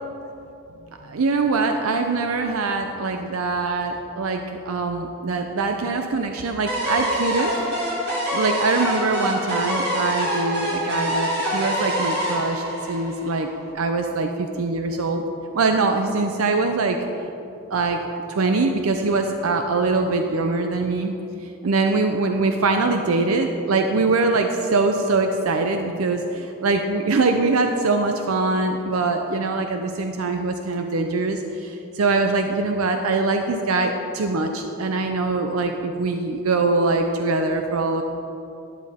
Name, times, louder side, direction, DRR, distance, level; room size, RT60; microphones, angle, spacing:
voice 1, 1.0-7.5 8.3-13.5 13.7-15.2 15.5-17.0 17.7-18.0 18.4-21.2 21.6-38.0, right 3 dB, 90° right, 5 dB, 0.6 m, -23 dB
sound 1, 6.7-13.6, equal, 50° right, 2.7 m, -25 dB
12.0 x 10.5 x 3.6 m, 2.9 s
head